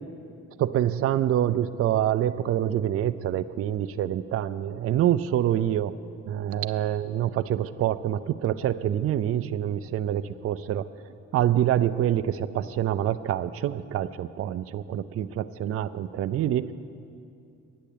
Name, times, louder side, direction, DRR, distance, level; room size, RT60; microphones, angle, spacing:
voice 1, 0.6-5.9 6.3-10.9 11.3-16.7, right 11 dB, 50° right, 12 dB, 0.4 m, -26 dB
10.0 x 8.2 x 8.5 m, 2.5 s
cardioid pair, 90°, 30 cm